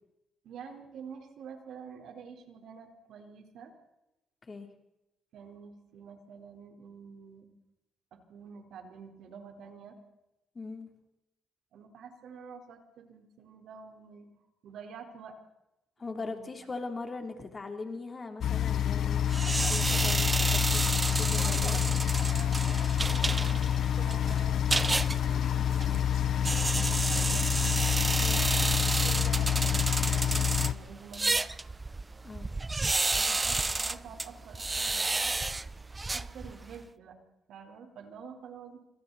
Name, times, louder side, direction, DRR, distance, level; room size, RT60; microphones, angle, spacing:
voice 1, 0.4-3.7 5.3-7.5 8.1-10.0 11.7-14.3 14.6-15.4 16.1-16.7 21.2-24.6 25.3-27.7 28.2-28.5 28.8-31.4 33.1-35.3 36.1-37.2 37.5-38.8, right 6 dB, 75° right, 4 dB, 4.2 m, -48 dB
voice 2, 10.5-10.9 16.0-21.8 25.5-25.7 28.2-28.4 32.2-32.5, left 3 dB, 30° left, 4 dB, 3.3 m, -40 dB
sound 1, 18.4-30.7, left 9 dB, 65° left, 0.7 m, -28 dB
sound 2, 19.3-36.8, right 3 dB, 20° right, 0.6 m, -31 dB
26.5 x 26.0 x 4.2 m, 0.91 s
cardioid pair, 90°, 0 cm